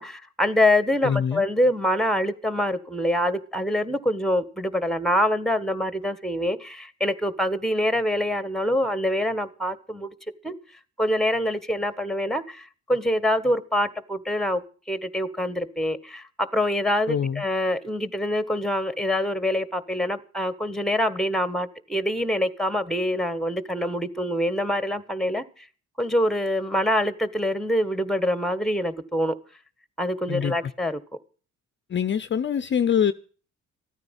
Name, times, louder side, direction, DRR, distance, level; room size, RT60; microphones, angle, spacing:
voice 1, 0.0-10.1 10.4-10.5 11.0-14.6 14.9-25.4 26.0-29.3 30.0-31.0, left 1 dB, ahead, 1.4 m, -25 dB
voice 2, 1.0-1.4 17.1-17.4 30.3-30.7 31.9-33.1, left 8 dB, 40° left, 0.7 m, -24 dB
14.5 x 9.6 x 8.1 m
cardioid pair, 90°, 30 cm